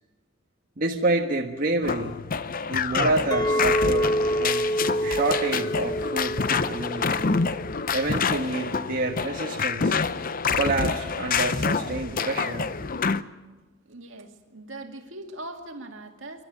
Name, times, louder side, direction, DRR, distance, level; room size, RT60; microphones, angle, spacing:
voice 1, 0.8-2.2 2.7-4.7 5.0-7.4 7.9-10.0 10.5-12.7, right 2 dB, 45° right, 0 dB, 1.5 m, -28 dB
sound 1, 1.8-13.2, left 5 dB, 45° left, 0.7 m, -27 dB
Chink clink, 3.3-8.5, equal, 20° left, 1.0 m, -28 dB
voice 2, 13.9-16.4, right 2 dB, 70° right, 4 dB, 2.4 m, -40 dB
27.5 x 12.0 x 9.2 m, 1.2 s
head